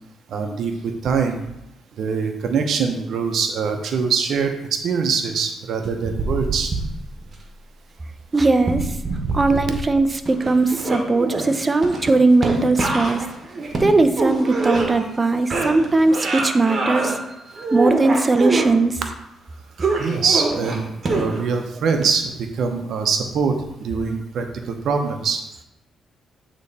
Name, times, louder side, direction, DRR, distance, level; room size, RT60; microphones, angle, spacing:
voice 1, 0.3-1.4 2.0-6.7 20.0-25.4, right 5 dB, 65° right, 5 dB, 0.8 m, -23 dB
sound 1, 5.8-7.3 8.6-10.0 10.2-15.2 15.5-17.2 17.6-18.7 19.8-21.6 22.0-22.1, right 3 dB, 40° right, 1.3 m, -25 dB
voice 2, 8.3-8.9 9.3-13.2 13.8-19.0, right 3 dB, 25° right, 9 dB, 0.6 m, -19 dB
8.4 x 3.2 x 4.2 m, 0.87 s
cardioid pair, 90°, 0 cm